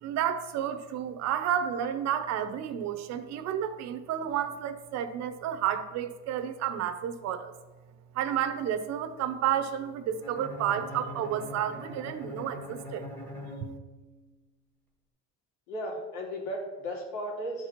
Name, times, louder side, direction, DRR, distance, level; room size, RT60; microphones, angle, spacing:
voice 1, 0.0-7.5 8.1-13.0, right 9 dB, 55° right, 10 dB, 0.8 m, -31 dB
Bowed string instrument, 10.2-14.3, left 1 dB, 5° left, 1.3 m, -42 dB
voice 2, 15.7-17.7, equal, 80° left, -1 dB, 3.0 m, -35 dB
12.0 x 4.7 x 5.8 m, 1.2 s
cardioid pair, 160°, 32 cm